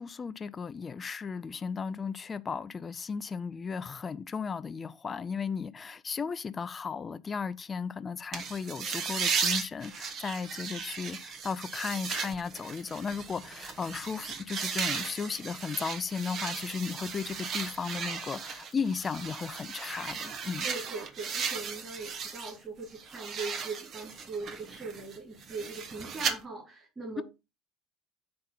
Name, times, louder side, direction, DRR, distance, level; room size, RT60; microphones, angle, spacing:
voice 1, 0.0-20.7 27.2-27.3, left 5 dB, 30° left, 0.6 m, -35 dB
sound 1, 8.3-22.6 22.9-26.3, right 6 dB, 50° right, 1.2 m, -36 dB
voice 2, 20.6-27.2, right 3 dB, 25° right, 4.7 m, -40 dB
7.4 x 4.3 x 5.5 m
figure-of-eight pair, 65°, 0 cm